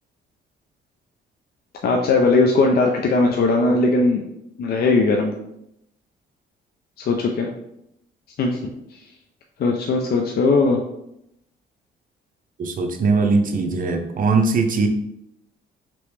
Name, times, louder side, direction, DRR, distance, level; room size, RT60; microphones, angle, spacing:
voice 1, 1.8-4.2 4.6-5.3 7.0-7.5 8.4-8.6 9.6-10.8, left 3 dB, 50° left, 1 dB, 0.5 m, -18 dB
voice 2, 12.6-14.9, right 4 dB, 45° right, 4 dB, 0.6 m, -20 dB
3.0 x 3.0 x 3.3 m, 0.80 s
cardioid pair, 90°, 20 cm